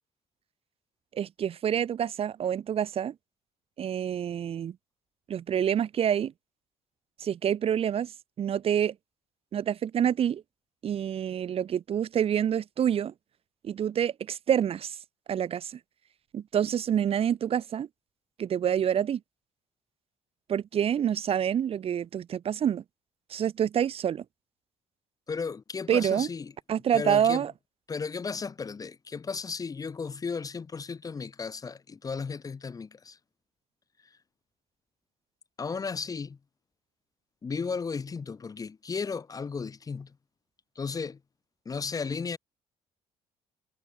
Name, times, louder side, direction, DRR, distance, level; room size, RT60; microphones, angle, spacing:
voice 1, 1.1-3.1 3.8-4.8 5.3-6.3 7.2-8.1 8.4-8.9 9.5-10.4 10.8-13.1 13.6-15.0 15.3-15.8 16.3-17.9 18.4-19.2 20.5-22.8 23.3-24.2 25.9-26.3 26.7-27.5, right 9 dB, 50° right, 1.2 m, -27 dB
voice 2, 25.3-26.5 26.9-27.4 27.9-33.2 35.6-36.4 37.4-40.1 40.8-41.2 41.7-42.4, left 5 dB, 30° left, 1.0 m, -34 dB
cardioid pair, 95°, 13 cm